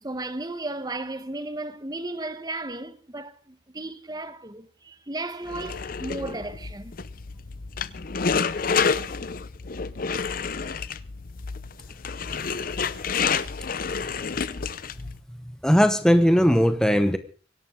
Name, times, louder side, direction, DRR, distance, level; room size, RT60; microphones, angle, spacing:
voice 1, 0.0-6.9, right 2 dB, 20° right, 1.0 m, -34 dB
sound 1, 5.5-15.2, left 5 dB, 50° left, 0.7 m, -29 dB
voice 2, 15.6-17.2, equal, 5° left, 0.9 m, -19 dB
24.5 x 11.0 x 3.7 m
head